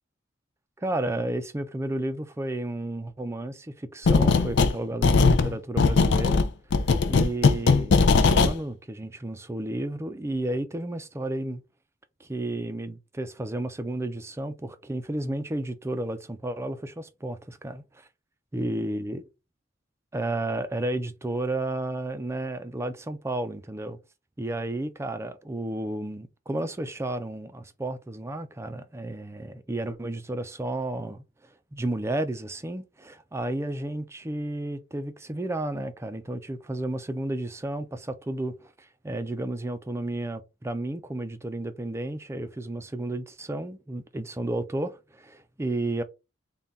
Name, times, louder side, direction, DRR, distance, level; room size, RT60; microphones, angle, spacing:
voice 1, 0.8-6.4 7.1-11.6 12.2-18.1 18.5-19.2 20.1-24.0 24.4-31.2 31.7-46.0, right 1 dB, 15° right, 0.4 m, -32 dB
sound 1, 4.0-4.7 5.0-8.5, left 4 dB, 65° left, 0.4 m, -19 dB
3.7 x 2.3 x 4.0 m
head